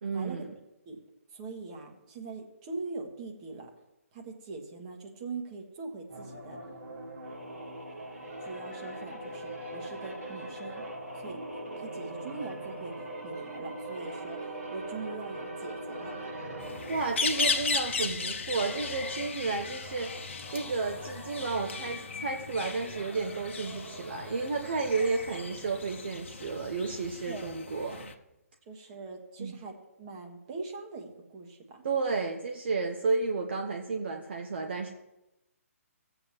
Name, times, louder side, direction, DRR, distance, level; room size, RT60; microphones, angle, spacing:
voice 1, 0.0-0.5 16.9-28.1 29.4-29.6 31.8-34.9, right 4 dB, 45° right, 3 dB, 0.9 m, -32 dB
voice 2, 1.3-3.7 4.1-6.6 8.4-10.8 11.1-11.4 11.8-16.2 27.2-27.6 28.7-31.8, right 4 dB, 25° right, 2 dB, 1.5 m, -42 dB
sound 1, 6.1-17.8 18.4-25.6, right 1 dB, 80° right, 3.4 m, -42 dB
sound 2, 16.6-28.1, left 5 dB, 50° left, 0.9 m, -36 dB
16.5 x 7.9 x 3.1 m, 0.94 s
figure-of-eight pair, 135°, 8 cm